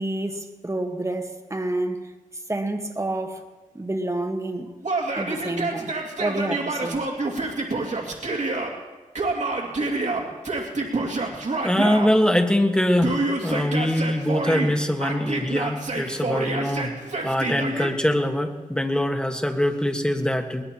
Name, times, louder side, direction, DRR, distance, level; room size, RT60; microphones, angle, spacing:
voice 1, 0.0-3.5 3.7-4.7 5.1-7.0, right 1 dB, 20° right, 1.5 m, -29 dB
Yell, 4.8-8.7 9.2-12.1 13.0-14.7 15.0-17.9, right 3 dB, 55° right, 2.5 m, -27 dB
voice 2, 11.6-16.9 17.2-20.6, left 1 dB, 5° left, 1.6 m, -23 dB
21.5 x 19.5 x 3.0 m
cardioid pair, 60°, 14 cm